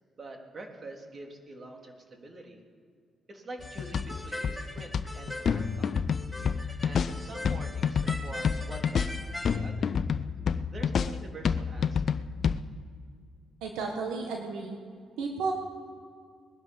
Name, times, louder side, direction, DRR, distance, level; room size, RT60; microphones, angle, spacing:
voice 1, 0.2-2.6 3.3-5.9 6.8-10.0 10.7-12.2, right 2 dB, 45° right, 2 dB, 3.2 m, -45 dB
sound 1, 3.6-12.6, left 6 dB, 60° left, 0.6 m, -29 dB
sound 2, 3.6-9.6, left 1 dB, 5° left, 2.6 m, -41 dB
voice 2, 13.6-14.8 15.2-15.5, right 4 dB, 85° right, 1 dB, 1.6 m, -32 dB
21.0 x 11.5 x 5.4 m, 2.2 s
hypercardioid pair, 50°, 0 cm